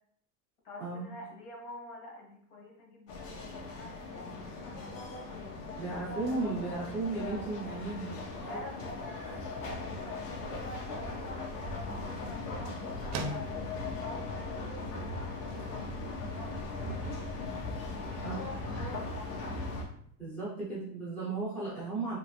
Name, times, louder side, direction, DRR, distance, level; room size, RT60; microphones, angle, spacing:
voice 1, 0.6-7.5 8.4-17.4 18.0-19.5, left 1 dB, 65° left, -1 dB, 1.3 m, -48 dB
sound 1, 3.1-19.8, left 3 dB, 85° left, 0.9 m, -39 dB
voice 2, 5.8-8.6 18.2-18.4 20.2-22.2, right 3 dB, 5° left, -9 dB, 0.5 m, -35 dB
sound 2, 15.2-20.8, right 2 dB, 60° right, 0.5 m, -48 dB
3.0 x 2.9 x 3.0 m, 0.65 s
cardioid pair, 175°, 46 cm